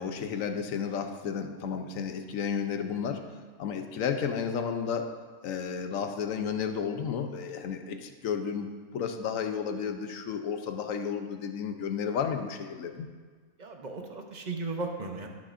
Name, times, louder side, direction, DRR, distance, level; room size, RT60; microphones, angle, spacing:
voice 1, 0.0-3.2 3.6-5.1 5.4-13.1, left 7 dB, 65° left, 6 dB, 1.0 m, -32 dB
voice 2, 13.6-15.3, right 3 dB, 40° right, 3 dB, 0.7 m, -36 dB
17.0 x 6.2 x 2.6 m, 1.5 s
omnidirectional pair, 1.6 m